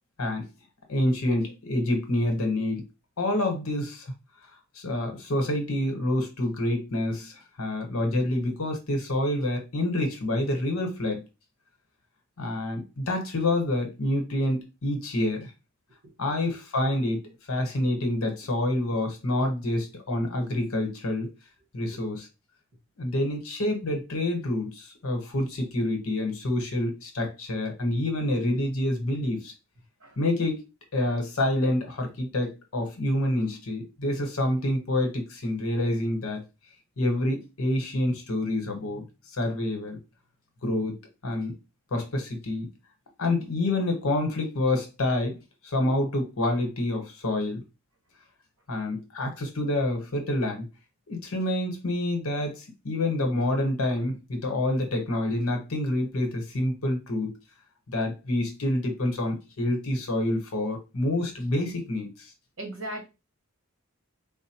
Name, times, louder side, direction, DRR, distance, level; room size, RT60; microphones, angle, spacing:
voice 1, 0.9-2.8 3.2-4.1 4.7-11.2 12.4-15.5 16.2-21.3 21.7-22.3 23.0-29.5 30.2-30.6 30.9-36.4 37.0-39.0 39.4-40.0 40.6-40.9 41.2-41.5 41.9-42.7 43.2-45.4 45.6-47.6 48.7-50.7 51.1-57.3 57.9-62.3, left 1 dB, 80° left, 0.9 m, -27 dB
voice 2, 62.6-63.0, right 1 dB, 60° right, 1.2 m, -36 dB
3.6 x 2.0 x 2.8 m
head